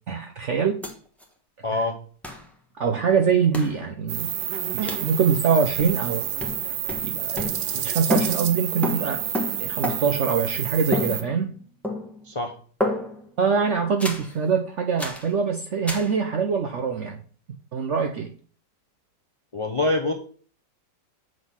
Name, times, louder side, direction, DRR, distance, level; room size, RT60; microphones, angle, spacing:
voice 1, 0.1-0.8 1.7-1.8 2.8-4.3 4.7-6.3 7.0-9.2 9.6-11.6 13.4-17.2 17.7-18.3, right 6 dB, 65° right, 4 dB, 0.7 m, -24 dB
sound 1, 0.8-0.9 1.2-1.3 2.2-2.5 3.5-3.8 4.9-5.1 5.8-6.1 6.4-7.8 8.1-10.3 10.9-11.6 11.8-12.3 12.8-13.3 14.0-14.3 15.0-15.3 15.9-16.1, left 1 dB, ahead, 1.0 m, -30 dB
voice 2, 1.6-2.0 12.2-12.5 19.5-20.1, left 2 dB, 60° left, 4 dB, 0.3 m, -25 dB
sound 2, 4.1-11.2, right 10 dB, 90° right, 1.5 m, -29 dB
8.0 x 4.0 x 5.5 m, 0.43 s
omnidirectional pair, 2.0 m